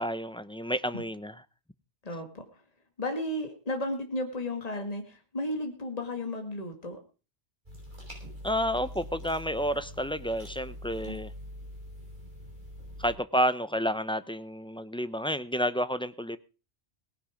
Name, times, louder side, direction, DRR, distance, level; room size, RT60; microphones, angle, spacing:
voice 1, 0.0-1.3 8.4-11.3 13.0-16.4, equal, 5° left, 0.6 m, -30 dB
voice 2, 2.0-2.6 3.0-7.0 11.0-11.2, left 1 dB, 35° left, 2.1 m, -34 dB
sound 1, 7.7-13.1, left 1 dB, 45° right, 6.5 m, -44 dB
18.5 x 11.0 x 5.0 m
omnidirectional pair, 1.1 m